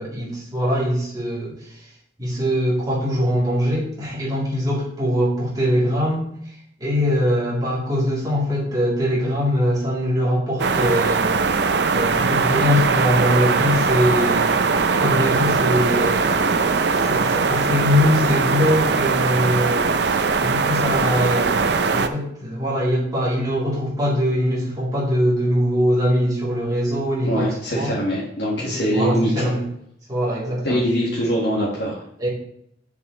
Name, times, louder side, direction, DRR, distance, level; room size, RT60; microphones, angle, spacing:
voice 1, 0.0-1.5 2.2-6.3 6.8-11.6 11.9-14.6 15.0-27.5 27.7-27.9 28.8-29.6 30.1-30.8 32.2-32.3, equal, 20° right, -7 dB, 3.1 m, -22 dB
sound 1, 10.6-22.1, right 4 dB, 65° right, 0.5 m, -20 dB
voice 2, 27.2-29.5 30.6-32.0, equal, 75° left, -6 dB, 1.7 m, -23 dB
8.0 x 7.1 x 3.2 m, 0.73 s
head